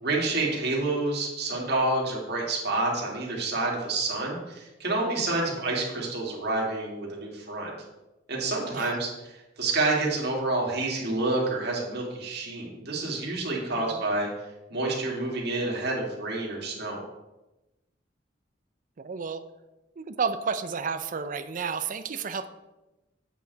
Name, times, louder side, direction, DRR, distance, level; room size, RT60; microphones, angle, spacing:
voice 1, 0.0-7.7 8.3-9.1 9.6-14.3 14.7-17.0, right 2 dB, 60° right, -3 dB, 2.3 m, -28 dB
voice 2, 19.0-19.4 20.0-22.5, right 5 dB, 45° right, 10 dB, 0.5 m, -31 dB
8.1 x 6.5 x 4.1 m, 1.0 s
head